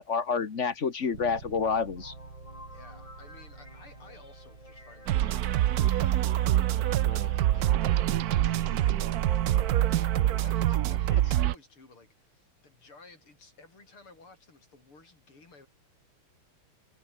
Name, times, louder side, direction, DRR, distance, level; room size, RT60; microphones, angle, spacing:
voice 1, 0.0-2.1, left 5 dB, 35° left, 1.6 m, -28 dB
Bass guitar, 1.1-10.9, right 4 dB, 55° right, 4.4 m, -51 dB
sound 1, 2.0-10.7, left 2 dB, 15° left, 3.1 m, -48 dB
voice 2, 2.7-15.7, left 3 dB, 75° left, 6.8 m, -55 dB
sound 2, 5.1-11.5, right 13 dB, 85° right, 0.8 m, -25 dB
omnidirectional pair, 2.4 m